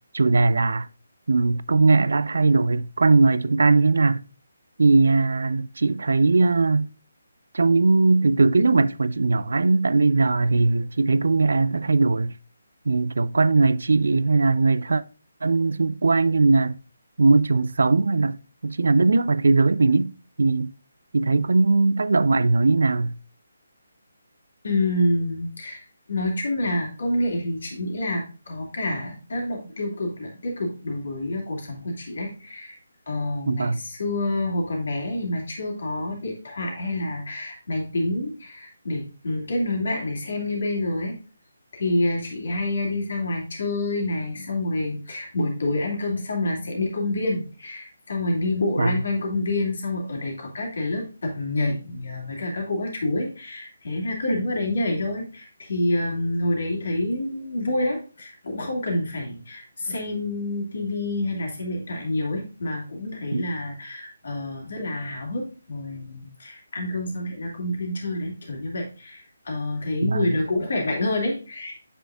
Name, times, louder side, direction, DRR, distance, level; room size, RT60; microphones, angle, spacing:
voice 1, 0.1-0.9 1.3-4.2 4.8-6.9 7.5-12.3 12.9-15.0 15.4-16.8 17.2-20.1 20.4-20.7 21.1-23.2 33.5-33.8 48.8-49.0 63.3-63.5 70.0-70.2, right 3 dB, 65° right, 0.4 m, -20 dB
voice 2, 24.6-32.8 33.1-41.1 41.7-71.8, left 1 dB, 55° left, 2.7 m, -28 dB
7.9 x 6.1 x 2.5 m
figure-of-eight pair, 150°, 0 cm